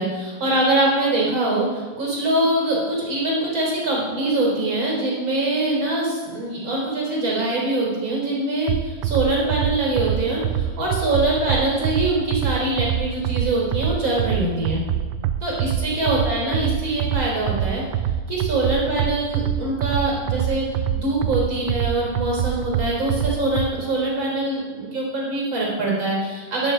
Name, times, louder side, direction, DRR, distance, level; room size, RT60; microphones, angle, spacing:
voice 1, 0.0-14.8 15.4-17.8 18.3-20.7 20.9-26.7, right 2 dB, 25° right, -3 dB, 4.3 m, -23 dB
sound 1, 8.7-23.7, right 10 dB, 85° right, 2.9 m, -25 dB
11.0 x 7.2 x 9.7 m, 1.4 s
omnidirectional pair, 5.2 m